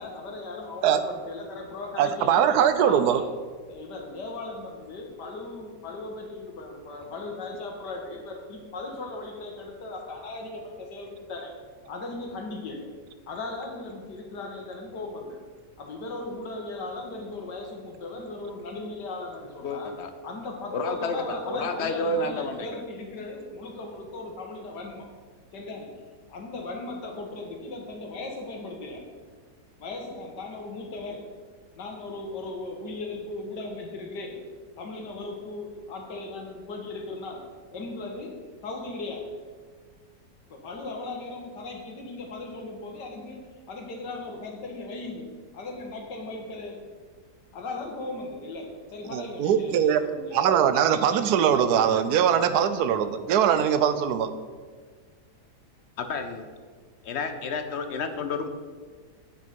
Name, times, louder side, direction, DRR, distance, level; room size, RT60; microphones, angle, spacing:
voice 1, 0.0-2.4 2.8-3.3 3.7-11.5 11.9-12.9 13.3-15.4 15.8-19.9 20.2-25.1 25.5-25.9 26.3-29.1 29.8-31.3 31.8-34.4 34.8-37.4 37.7-38.3 38.6-39.3 40.5-43.4 43.7-45.3 45.5-46.8 47.5-50.6, left 2 dB, 90° left, 2 dB, 2.0 m, -37 dB
voice 2, 2.0-3.2 49.1-50.0 50.3-54.3, right 8 dB, 75° right, 11 dB, 1.1 m, -22 dB
voice 3, 19.6-20.1 20.7-22.7 56.0-56.5 57.0-58.5, left 3 dB, 60° left, 8 dB, 0.7 m, -30 dB
8.3 x 6.5 x 5.2 m, 1.5 s
omnidirectional pair, 1.8 m